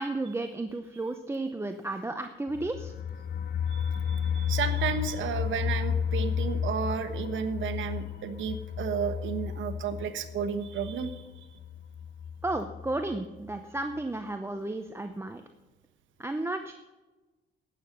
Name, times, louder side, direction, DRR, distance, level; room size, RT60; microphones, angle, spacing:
voice 1, 0.0-2.9 12.4-15.4 16.2-16.7, right 2 dB, 10° right, 7 dB, 0.7 m, -33 dB
sound 1, 2.5-13.2 13.5-13.6 13.9-14.0, left 8 dB, 55° left, 0.6 m, -33 dB
voice 2, 3.7-11.2, right 7 dB, 75° right, 10 dB, 1.1 m, -33 dB
11.5 x 8.8 x 5.3 m, 1.2 s
cardioid pair, 90°, 20 cm